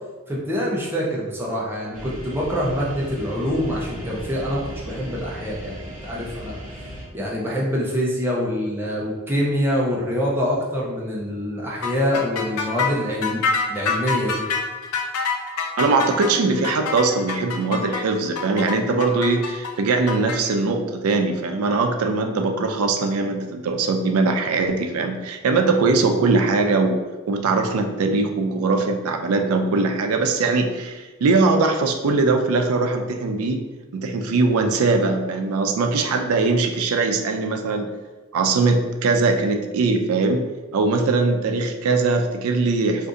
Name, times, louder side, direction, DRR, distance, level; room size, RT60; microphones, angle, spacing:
voice 1, 0.3-6.6 7.1-13.4 13.7-14.4, equal, 10° right, -5 dB, 0.5 m, -25 dB
sound 1, 1.9-7.0, equal, 35° right, 0.9 m, -36 dB
sound 2, 11.8-20.4, left 5 dB, 90° left, 0.4 m, -26 dB
voice 2, 15.8-27.0 27.3-33.6 33.9-37.9 38.3-40.4 40.7-43.1, right 3 dB, 85° right, 5 dB, 0.4 m, -21 dB
2.6 x 2.5 x 3.6 m, 1.3 s
head